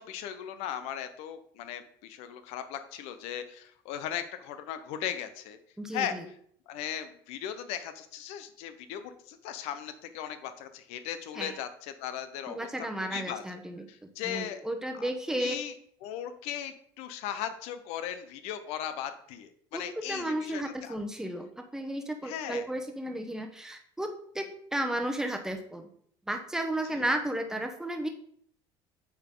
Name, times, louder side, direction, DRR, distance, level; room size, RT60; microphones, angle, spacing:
voice 1, 0.0-5.6 5.9-6.2 6.7-12.7 13.1-13.6 13.9-14.6 14.9-15.7 16.0-21.0 22.2-22.7 26.9-27.1, left 10 dB, 75° left, 10 dB, 0.7 m, -38 dB
voice 2, 5.8-6.2 11.4-11.5 12.5-15.6 19.7-25.9 26.3-28.1, right 1 dB, 5° right, 5 dB, 0.9 m, -33 dB
8.6 x 3.9 x 3.7 m, 0.64 s
cardioid pair, 130°, 11 cm